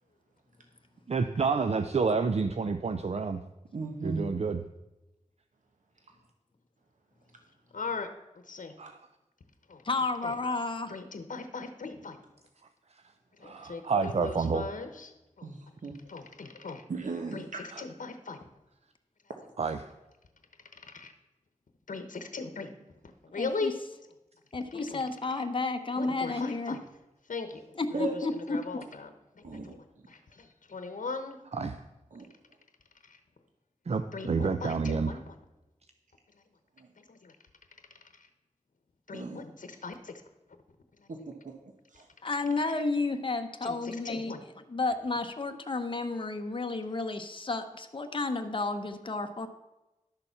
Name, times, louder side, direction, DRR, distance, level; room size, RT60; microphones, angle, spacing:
voice 1, 1.1-3.4 4.0-4.6 8.8-8.9 13.4-14.6 19.6-19.8 31.5-31.8 33.9-35.2, right 5 dB, 55° right, 9 dB, 0.5 m, -29 dB
voice 2, 3.7-4.2 15.4-16.0 16.9-17.6 27.9-28.2 29.4-29.7 32.1-32.3 36.8-36.9 39.1-39.4 39.7-39.8 41.1-41.6, right 3 dB, 75° right, 3 dB, 1.1 m, -37 dB
voice 3, 7.7-8.1 8.5-8.7 9.7-9.8 10.2-10.3 10.9-12.2 13.4-15.1 15.4-15.5 16.1-16.8 17.3-17.5 17.8-18.4 20.8-21.1 21.9-22.7 23.2-23.7 24.7-25.0 26.0-26.8 27.3-27.6 27.9-28.1 28.5-29.1 29.4-29.8 30.1-31.7 33.1-33.2 34.1-35.3 37.0-37.3 39.1-40.1 43.6-43.8 44.0-44.4, left 4 dB, 80° left, 8 dB, 1.0 m, -39 dB
voice 4, 9.8-10.9 23.3-23.7 24.5-26.8 27.7-28.6 42.2-49.5, left 3 dB, 40° left, 6 dB, 0.9 m, -32 dB
11.5 x 6.9 x 5.8 m, 1.0 s
wide cardioid pair, 95°, 13 cm